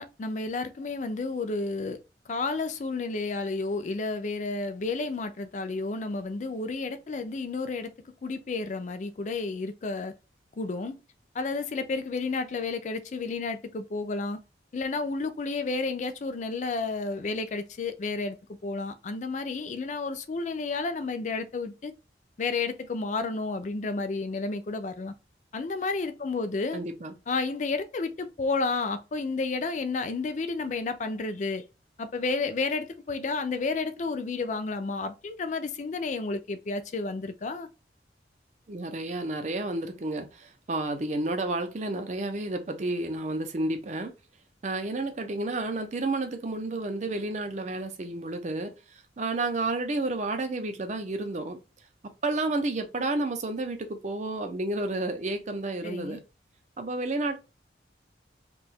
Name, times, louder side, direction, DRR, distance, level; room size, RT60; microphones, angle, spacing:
voice 1, 0.0-2.0 2.3-7.9 8.2-10.1 10.6-11.0 11.3-14.4 14.7-18.4 18.6-21.9 22.4-25.1 25.5-26.8 27.3-31.6 32.0-37.7 55.8-56.2, left 3 dB, 40° left, 0.4 m, -31 dB
voice 2, 26.7-27.1 38.7-44.1 44.6-48.7 49.2-51.6 52.2-56.2 56.8-57.4, right 2 dB, 40° right, 0.5 m, -31 dB
2.7 x 2.3 x 4.1 m
head